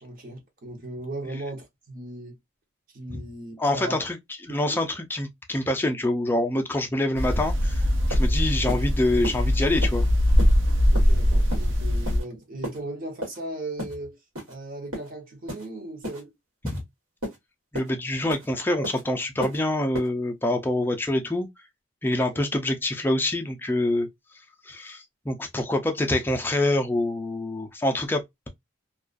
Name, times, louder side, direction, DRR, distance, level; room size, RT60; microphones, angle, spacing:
voice 1, 0.0-2.4 2.9-4.0 4.5-4.9 10.9-14.2 14.5-16.3 22.3-22.5, right 1 dB, 40° right, 0.8 m, -37 dB
voice 2, 3.6-4.2 4.4-7.8 8.1-10.1 16.6-16.8 17.7-21.5 22.0-24.1 24.6-28.5, left 1 dB, 10° left, 0.3 m, -26 dB
sound 1, 7.2-12.2, equal, 60° right, 0.5 m, -21 dB
sound 2, 7.6-7.7 8.1-8.3 8.7-8.8 9.2-9.4 9.8-10.0 10.4-10.5 10.9-11.1 11.5-11.7 12.1-12.3 12.6-12.8 13.2-13.4 13.8-14.0 14.4-14.5 14.9-15.1 15.5-15.7 16.0-16.2 16.7-16.8 17.2-17.4 17.7-17.9 18.3-18.5 18.8-19.0 19.4-19.6 19.9-20.1, equal, 85° right, 1.3 m, -34 dB
2.3 x 2.2 x 2.4 m
head